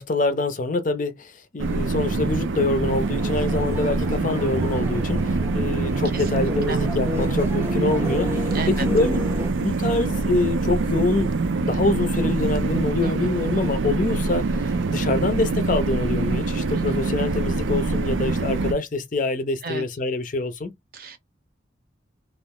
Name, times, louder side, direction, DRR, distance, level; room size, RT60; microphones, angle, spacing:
voice 1, 0.0-9.3 9.6-11.3 11.6-14.5 14.9-20.7, left 2 dB, 45° left, 0.5 m, -25 dB
sound 1, 1.6-18.7, right 3 dB, 90° right, 0.4 m, -24 dB
sound 2, 2.8-9.5, equal, 10° right, 0.6 m, -33 dB
voice 2, 6.1-6.8 8.5-8.9 13.0-13.1 19.6-19.8 20.9-21.2, right 3 dB, 50° right, 0.7 m, -32 dB
2.4 x 2.0 x 3.6 m
head